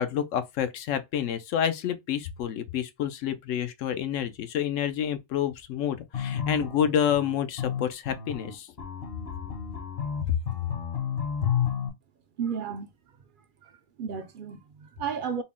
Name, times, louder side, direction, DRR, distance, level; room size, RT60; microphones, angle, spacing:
voice 1, 0.0-8.7 10.3-10.4, left 9 dB, 85° left, 0.9 m, -28 dB
sound 1, 6.1-11.9, left 8 dB, 55° left, 1.0 m, -31 dB
voice 2, 12.4-12.9 13.6-13.7 14.0-15.4, right 6 dB, 60° right, 0.5 m, -33 dB
4.0 x 2.1 x 3.6 m
omnidirectional pair, 1.3 m